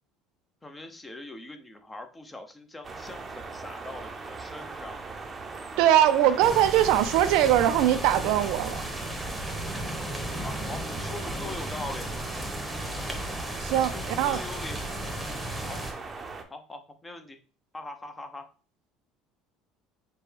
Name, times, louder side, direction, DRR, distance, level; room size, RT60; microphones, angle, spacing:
voice 1, 0.6-5.0 10.4-12.1 13.8-15.1 15.7-16.1 16.5-17.4 17.7-18.5, left 2 dB, 15° left, 0.7 m, -42 dB
sound 1, 2.8-16.4, right 4 dB, 25° right, 0.7 m, -40 dB
voice 2, 5.8-8.8 13.6-14.4, right 11 dB, 70° right, 0.4 m, -21 dB
sound 2, 6.4-15.9, right 1 dB, ahead, 1.1 m, -35 dB
6.6 x 2.2 x 3.3 m
supercardioid pair, 110°, 0 cm